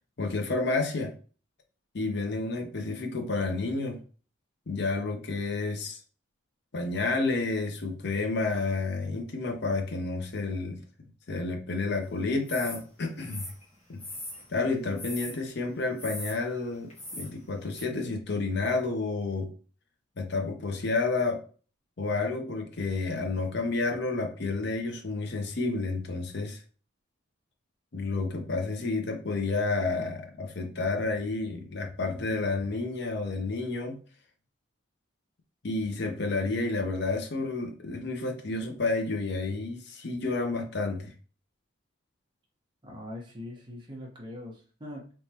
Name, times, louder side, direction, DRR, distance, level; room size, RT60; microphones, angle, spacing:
voice 1, 0.2-1.1 1.9-4.0 4.7-6.0 6.7-10.8 11.3-13.5 13.9-14.0 14.5-19.5 20.2-21.4 22.0-26.6 27.9-34.0 35.6-41.1, left 3 dB, 55° left, 5 dB, 0.6 m, -30 dB
sound 1, 12.5-12.8 13.2-14.5 15.0-15.4 16.0-16.4 16.9-17.3 17.7-17.8, left 1 dB, 30° left, 1.1 m, -40 dB
voice 2, 42.8-45.1, left 1 dB, 20° right, -2 dB, 1.0 m, -42 dB
3.5 x 3.0 x 2.8 m, 0.38 s
head